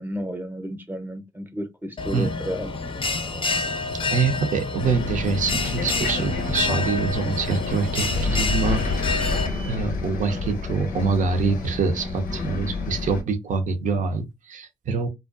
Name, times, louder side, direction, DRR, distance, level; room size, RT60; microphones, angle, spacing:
voice 1, 0.0-2.7, equal, 15° right, 0.7 m, -32 dB
Bell, 2.0-9.5, left 3 dB, 40° left, 0.5 m, -28 dB
voice 2, 4.1-9.1 9.6-15.1, right 4 dB, 70° right, 0.6 m, -25 dB
Bus, 4.8-13.2, left 3 dB, 85° left, 0.6 m, -29 dB
2.4 x 2.2 x 2.4 m
supercardioid pair, 55°, 14 cm